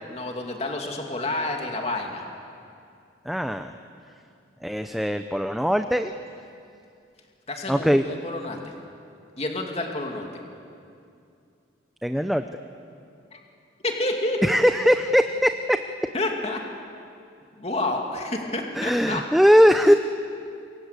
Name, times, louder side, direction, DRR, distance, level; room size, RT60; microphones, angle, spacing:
voice 1, 0.1-2.2 7.5-8.6 9.4-10.3 13.3-13.4 13.8-14.5 16.1-16.6 17.6-19.2, left 2 dB, 35° left, 1 dB, 2.6 m, -29 dB
voice 2, 3.3-3.7 4.6-6.1 7.7-8.1 12.0-12.5 14.4-15.8 18.7-19.9, equal, ahead, 7 dB, 0.6 m, -20 dB
27.0 x 23.5 x 8.3 m, 2.5 s
head